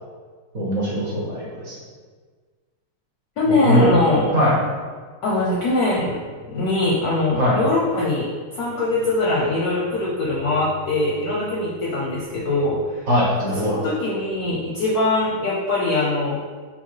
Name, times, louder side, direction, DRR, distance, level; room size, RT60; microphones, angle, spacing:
voice 1, 0.5-1.8 3.6-3.9 4.3-4.5 7.4-7.6 13.1-13.7, equal, 50° right, -6 dB, 1.1 m, -20 dB
voice 2, 3.4-4.3 5.2-6.2 6.5-13.0 13.5-16.4, left 2 dB, 70° left, -4 dB, 0.9 m, -22 dB
5.6 x 2.1 x 4.5 m, 1.5 s
omnidirectional pair, 2.2 m